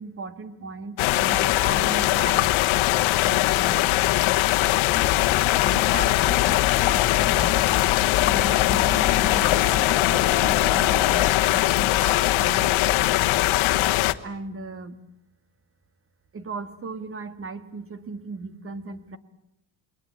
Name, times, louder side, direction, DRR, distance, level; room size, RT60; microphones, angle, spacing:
voice 1, 0.0-3.9 5.6-7.7 8.2-12.7 14.2-15.0 16.3-19.2, right 3 dB, 30° right, 11 dB, 1.8 m, -37 dB
sound 1, 1.0-14.1, left 17 dB, 80° left, 1.1 m, -21 dB
sound 2, 4.9-11.3, left 11 dB, 65° left, 2.2 m, -28 dB
28.5 x 22.0 x 8.8 m, 0.84 s
cardioid pair, 135°, 47 cm